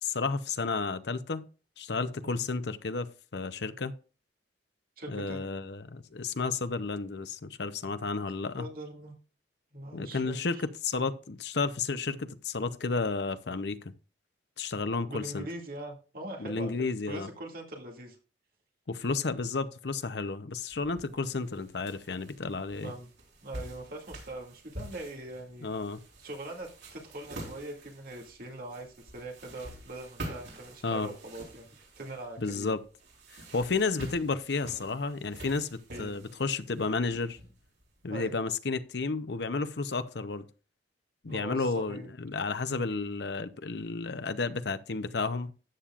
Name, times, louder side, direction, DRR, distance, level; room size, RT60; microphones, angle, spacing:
voice 1, 0.0-1.4 1.8-3.9 5.1-8.7 9.9-13.9 14.6-15.5 16.4-17.3 18.9-22.9 25.6-26.0 30.8-31.1 32.4-32.8 33.5-37.4 38.0-40.5 41.2-45.5, left 4 dB, 70° left, 0.8 m, -32 dB
voice 2, 5.0-5.4 8.6-9.1 9.7-10.6 15.1-16.7 17.1-18.2 22.8-23.1 23.4-25.7 26.2-32.7 35.9-36.1 38.1-38.5 41.3-42.1, right 2 dB, 55° right, 2.3 m, -42 dB
sound 1, 20.7-38.2, right 1 dB, 85° right, 4.1 m, -47 dB
13.0 x 8.5 x 2.5 m
head